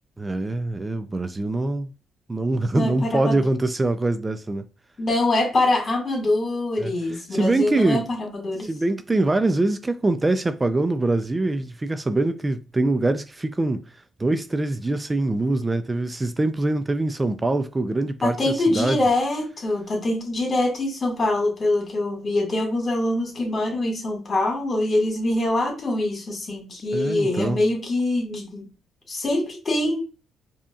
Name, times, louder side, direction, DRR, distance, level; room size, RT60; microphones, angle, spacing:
voice 1, 0.2-1.9 2.3-4.7 6.8-8.0 8.6-13.8 14.2-19.0 26.9-27.6, right 2 dB, 20° right, 0.4 m, -24 dB
voice 2, 2.7-3.4 5.0-8.7 18.2-28.6 29.1-30.0, left 2 dB, 40° left, 1.9 m, -24 dB
4.9 x 2.8 x 2.4 m
cardioid pair, 90°, 0 cm